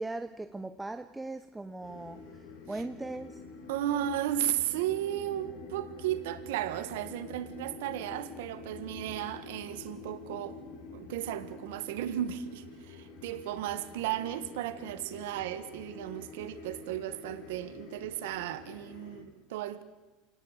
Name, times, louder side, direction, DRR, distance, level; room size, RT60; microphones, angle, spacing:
voice 1, 0.0-3.4, right 2 dB, 5° right, 0.7 m, -39 dB
sound 1, 1.8-19.2, left 4 dB, 65° left, 6.6 m, -47 dB
voice 2, 3.7-10.6 10.9-19.8, right 12 dB, 90° right, 1.4 m, -34 dB
28.5 x 18.0 x 8.2 m
cardioid pair, 155°, 0 cm